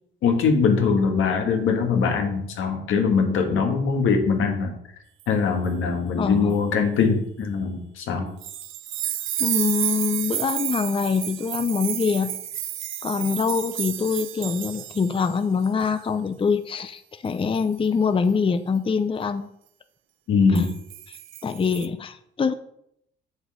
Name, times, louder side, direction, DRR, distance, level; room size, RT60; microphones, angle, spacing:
voice 1, 0.2-4.7 5.3-8.3 20.3-20.7, left 5 dB, 85° left, 3 dB, 1.7 m, -22 dB
voice 2, 6.2-6.6 9.4-12.3 13.0-19.5 20.5-20.7 21.1-22.5, left 5 dB, 25° left, 10 dB, 0.6 m, -24 dB
sound 1, 8.4-15.4 15.6-15.9 17.3-17.6 20.6-21.9, right 12 dB, 80° right, 0.6 m, -31 dB
7.9 x 6.5 x 4.8 m, 0.74 s
cardioid pair, 95°, 20 cm